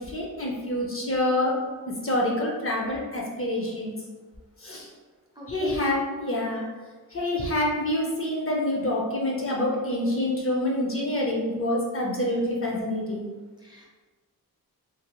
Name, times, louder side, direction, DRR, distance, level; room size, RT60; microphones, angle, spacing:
voice 1, 0.1-1.5 1.9-3.9 4.6-4.9 5.5-6.7 7.1-13.3, left 1 dB, 35° left, -3 dB, 0.5 m, -27 dB
voice 2, 5.4-5.9 13.6-13.9, right 2 dB, 10° right, -4 dB, 0.5 m, -38 dB
2.6 x 2.4 x 2.9 m, 1.4 s
wide cardioid pair, 95°, 38 cm